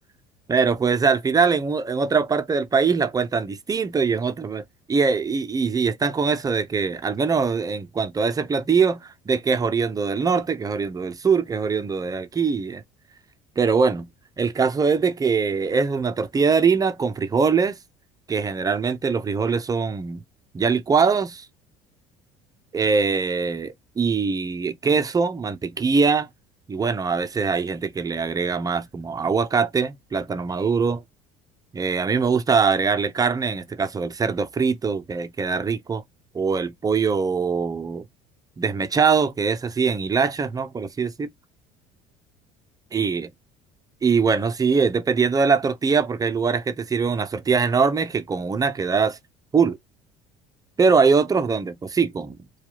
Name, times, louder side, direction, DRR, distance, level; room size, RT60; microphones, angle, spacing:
voice 1, 0.5-12.8 13.6-14.1 14.4-17.8 18.3-20.2 20.5-21.5 22.7-26.3 26.7-31.0 31.7-36.0 36.3-38.0 38.6-41.3 42.9-43.3 44.0-49.2 49.5-49.8 50.8-52.4, right 5 dB, 25° right, 0.7 m, -22 dB
4.4 x 2.4 x 3.9 m
supercardioid pair, 90°, 15 cm